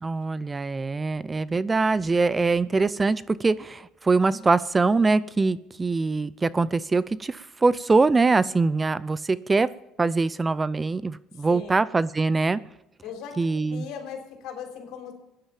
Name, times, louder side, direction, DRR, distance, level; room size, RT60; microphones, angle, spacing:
voice 1, 0.0-9.7 10.0-12.6 13.4-13.8, right 3 dB, 20° right, 18 dB, 0.4 m, -23 dB
voice 2, 11.3-12.0 13.0-15.1, left 7 dB, 75° left, 3 dB, 3.7 m, -39 dB
16.0 x 10.5 x 7.4 m, 0.90 s
cardioid pair, 120°, 0 cm